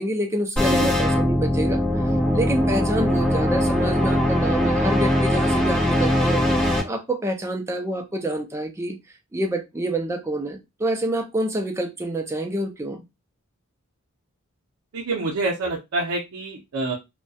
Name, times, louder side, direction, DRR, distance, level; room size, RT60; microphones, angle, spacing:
voice 1, 0.0-6.4 6.8-9.0 9.3-13.0, right 1 dB, 15° right, 0.4 m, -27 dB
sound 1, 0.6-6.8, left 1 dB, 10° left, 0.9 m, -21 dB
voice 2, 14.9-17.0, right 3 dB, 80° right, 0.5 m, -27 dB
2.3 x 2.1 x 2.6 m
head